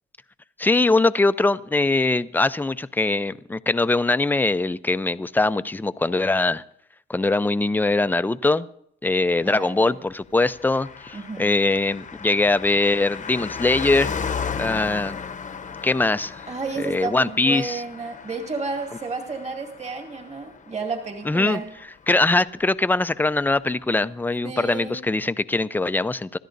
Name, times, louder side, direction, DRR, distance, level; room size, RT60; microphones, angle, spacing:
voice 1, 0.6-6.6 7.1-8.7 9.0-14.1 14.6-15.2 15.8-16.4 16.8-17.8 21.3-21.6 22.1-26.4, left 2 dB, 10° left, 13 dB, 0.5 m, -22 dB
voice 2, 9.4-9.9 11.1-11.6 16.5-21.7 24.4-25.0, right 4 dB, 35° right, 2 dB, 2.3 m, -32 dB
Car passing by, 10.5-22.3 22.6-22.7, left 6 dB, 40° left, 0.9 m, -35 dB
26.5 x 13.0 x 2.6 m, 0.70 s
cardioid pair, 90°, 20 cm